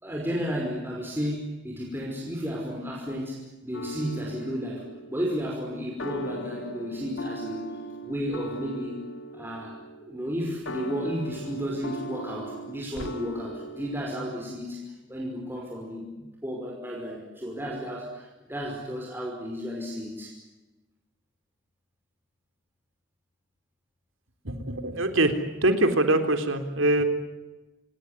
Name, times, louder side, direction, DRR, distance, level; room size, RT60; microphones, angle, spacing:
voice 1, 0.0-7.7 8.0-9.0 9.3-16.1 16.4-20.4, equal, 10° right, -2 dB, 5.3 m, -33 dB
sound 1, 3.7-14.4, right 1 dB, 75° left, 2.3 m, -39 dB
voice 2, 24.4-25.3 25.6-27.0, right 2 dB, 85° right, 7 dB, 3.6 m, -23 dB
26.5 x 20.0 x 9.8 m, 1.1 s
head